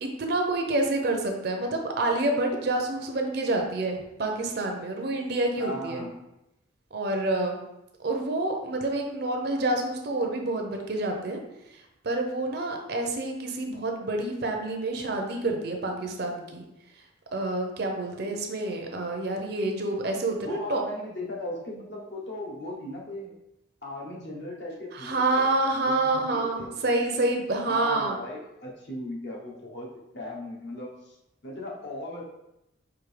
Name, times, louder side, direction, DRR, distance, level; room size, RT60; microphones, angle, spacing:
voice 1, 0.0-6.0 6.9-7.6 8.0-11.4 12.0-16.6 17.3-20.8 24.9-28.2, right 2 dB, 50° right, 3 dB, 0.6 m, -28 dB
voice 2, 5.6-6.1 20.4-23.3 23.8-25.5 26.0-26.8 27.7-29.9 30.1-31.1 31.4-32.2, left 1 dB, 55° left, -2 dB, 0.9 m, -37 dB
4.8 x 2.7 x 3.2 m, 0.88 s
head